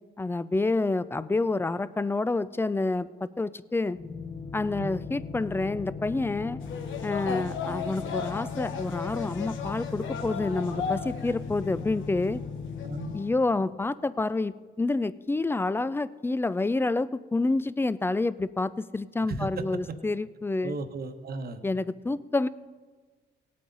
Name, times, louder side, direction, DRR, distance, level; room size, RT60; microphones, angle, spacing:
voice 1, 0.2-4.0 4.5-6.6 7.0-12.4 13.1-20.8 21.6-22.5, left 3 dB, 10° left, 17 dB, 0.3 m, -28 dB
sound 1, 3.9-13.2, left 5 dB, 30° left, 1.1 m, -38 dB
sound 2, 6.6-11.4 11.6-12.4 12.8-13.2, left 6 dB, 75° left, 1.1 m, -36 dB
voice 2, 19.3-19.8 20.6-21.6, right 3 dB, 50° right, 8 dB, 1.1 m, -35 dB
18.0 x 8.5 x 3.9 m, 1.4 s
cardioid pair, 90°, 20 cm